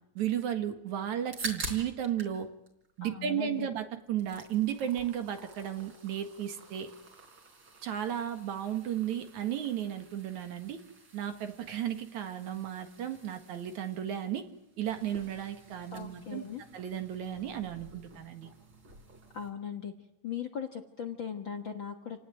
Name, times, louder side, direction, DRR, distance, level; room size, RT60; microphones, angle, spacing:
voice 1, 0.2-2.5 3.0-6.9 7.8-10.8 11.1-14.5 14.8-16.4 16.7-18.5, right 10 dB, 65° right, 7 dB, 2.9 m, -34 dB
sound 1, 1.3-2.4 2.7-3.7 4.0-19.5, right 2 dB, 35° right, 4.6 m, -48 dB
voice 2, 3.0-3.7 15.9-16.6 19.3-19.9 20.2-22.2, left 7 dB, 50° left, 5 dB, 1.7 m, -38 dB
29.0 x 18.5 x 9.3 m, 0.83 s
omnidirectional pair, 3.8 m